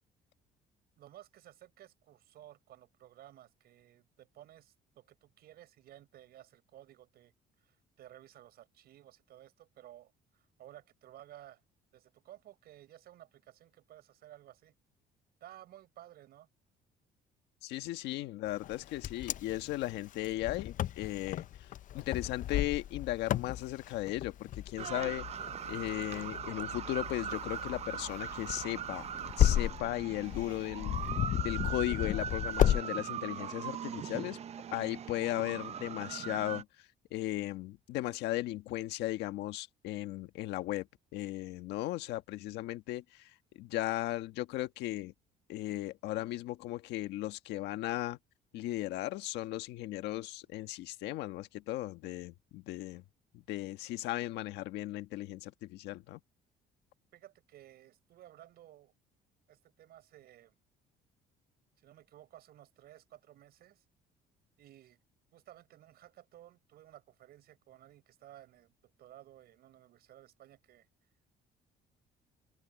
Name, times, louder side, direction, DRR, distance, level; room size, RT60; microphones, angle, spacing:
voice 1, 1.0-7.3 7.6-11.6 11.9-14.7 15.4-16.5 57.1-58.9 59.5-60.6 61.8-63.8 64.6-65.0 65.3-70.9, right 13 dB, 70° right, 6.4 m, -56 dB
voice 2, 17.6-21.7 21.9-25.3 25.7-29.1 29.4-31.1 31.4-34.4 34.7-36.7 37.1-40.9 41.1-43.3 43.6-45.1 45.5-48.2 48.5-53.0 53.3-56.2, left 16 dB, 85° left, 1.4 m, -36 dB
Wind, 18.6-32.8, left 11 dB, 50° left, 0.5 m, -34 dB
sound 1, 24.8-36.6, right 9 dB, 40° right, 0.5 m, -40 dB
cardioid pair, 110°, 17 cm